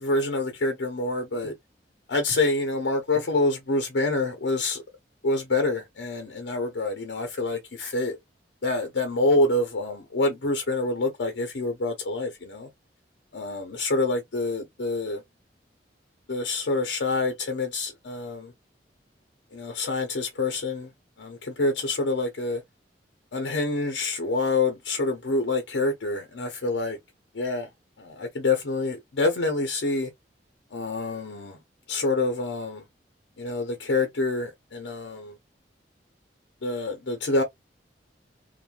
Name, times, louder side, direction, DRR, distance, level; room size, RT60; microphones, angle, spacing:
voice 1, 0.0-1.5 2.1-4.8 5.2-8.2 8.6-12.7 13.3-15.2 16.3-18.5 19.5-20.9 21.2-22.6 23.3-27.0 27.4-27.7 28.0-30.1 30.7-31.6 31.9-32.8 33.4-35.3 36.6-37.4, left 2 dB, 75° left, 0.6 m, -26 dB
3.0 x 2.1 x 2.4 m
head